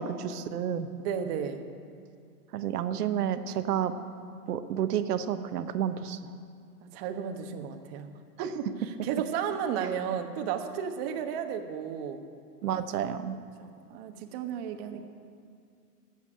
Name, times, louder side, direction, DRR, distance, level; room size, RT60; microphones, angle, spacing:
voice 1, 0.0-0.9 2.5-3.9 4.5-6.2 12.6-13.4, right 9 dB, 75° right, 10 dB, 1.1 m, -30 dB
voice 2, 1.0-1.6 6.8-8.1 8.4-12.2 13.6-15.1, right 8 dB, 40° right, 6 dB, 1.3 m, -33 dB
12.0 x 8.4 x 9.9 m, 2.3 s
hypercardioid pair, 135°, 47 cm